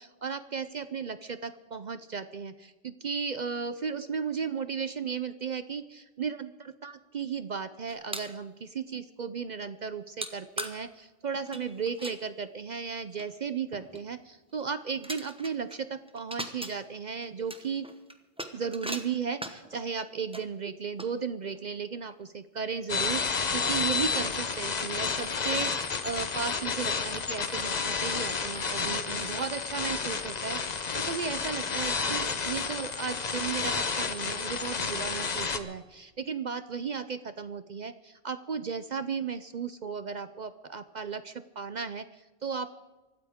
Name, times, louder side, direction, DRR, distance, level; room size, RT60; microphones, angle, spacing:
voice 1, 0.0-17.9 18.5-42.7, right 6 dB, 50° right, 12 dB, 0.5 m, -35 dB
sound 1, 7.9-8.4 10.2-10.3 10.6-10.7 11.3-12.2 12.9-13.0 13.2-13.3 13.7-14.0 14.6-14.7 15.0-15.8 16.1-16.7 17.2-19.8 20.3-20.4 21.0-21.6 22.1-22.2 22.8-22.9 23.2-23.6, right 1 dB, 5° right, 0.9 m, -40 dB
sound 2, 22.9-35.6, left 5 dB, 40° left, 0.9 m, -31 dB
24.5 x 13.0 x 3.6 m, 1.2 s
omnidirectional pair, 1.3 m